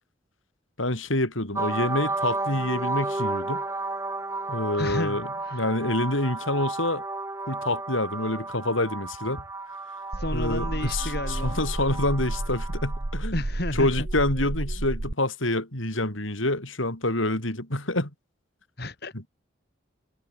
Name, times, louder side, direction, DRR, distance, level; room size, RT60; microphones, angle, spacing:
voice 1, 0.8-3.6 4.5-5.3 5.5-7.0 7.5-9.4 10.3-13.3 13.8-18.1, left 1 dB, 85° left, 7.3 m, -27 dB
sound 1, 1.5-13.1, right 2 dB, 15° right, 2.5 m, -33 dB
voice 2, 4.7-5.7 10.1-11.6 13.3-14.1 18.8-19.1, left 1 dB, 50° left, 2.9 m, -32 dB
sound 2, 10.1-15.1, right 1 dB, 55° right, 1.2 m, -31 dB
head